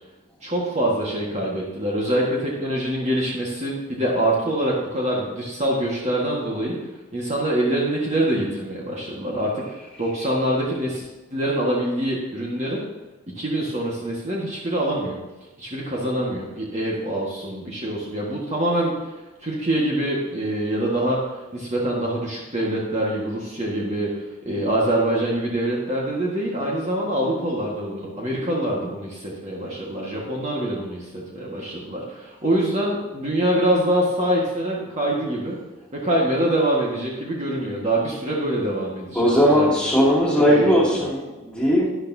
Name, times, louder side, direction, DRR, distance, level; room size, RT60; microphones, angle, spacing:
voice 1, 0.4-6.8 7.1-12.8 13.4-15.2 15.6-19.0 19.4-21.2 21.5-24.1 24.5-35.6 35.9-39.7 40.4-40.9, right 1 dB, 30° right, -4 dB, 1.6 m, -25 dB
voice 2, 39.1-42.0, equal, 5° left, -6 dB, 2.5 m, -18 dB
12.0 x 10.5 x 2.8 m, 1.1 s
head